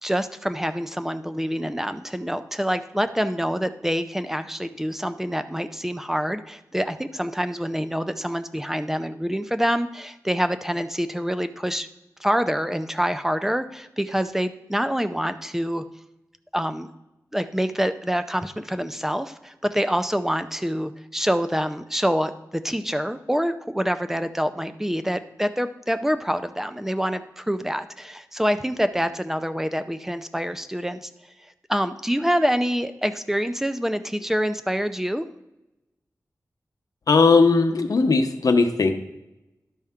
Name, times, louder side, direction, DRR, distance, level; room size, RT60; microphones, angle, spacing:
voice 1, 0.0-11.9 12.2-15.8 16.5-16.9 17.3-31.1 31.7-35.3, equal, 5° right, 10 dB, 0.5 m, -26 dB
voice 2, 37.1-38.9, left 4 dB, 75° left, 6 dB, 0.8 m, -18 dB
12.0 x 5.5 x 3.6 m, 0.95 s
wide cardioid pair, 90°, 6 cm